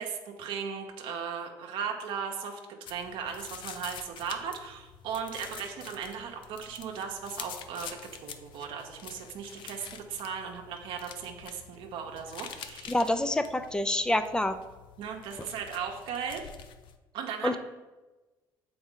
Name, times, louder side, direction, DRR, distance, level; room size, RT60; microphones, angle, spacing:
voice 1, 0.0-12.9 15.0-16.4 17.1-17.6, right 6 dB, 70° right, 2 dB, 0.8 m, -37 dB
sound 1, 2.9-17.0, left 8 dB, 60° left, 0.5 m, -47 dB
voice 2, 12.9-14.6 17.4-17.6, left 1 dB, 10° left, 11 dB, 0.4 m, -27 dB
6.9 x 4.3 x 3.7 m, 1.2 s
supercardioid pair, 95°, 9 cm